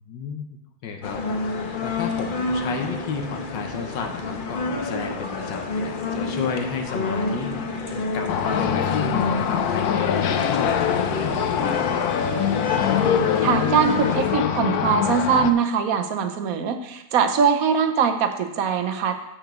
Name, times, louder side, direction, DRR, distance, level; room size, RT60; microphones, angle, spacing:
voice 1, 0.1-1.3 1.8-11.9, left 5 dB, 90° left, 4 dB, 1.6 m, -33 dB
sound 1, 1.0-14.4, left 3 dB, 45° left, 0.7 m, -29 dB
sound 2, 8.3-15.5, left 8 dB, 65° left, 1.1 m, -23 dB
voice 2, 13.4-19.2, right 6 dB, 60° right, 8 dB, 1.1 m, -22 dB
8.0 x 6.7 x 6.1 m, 0.91 s
omnidirectional pair, 1.9 m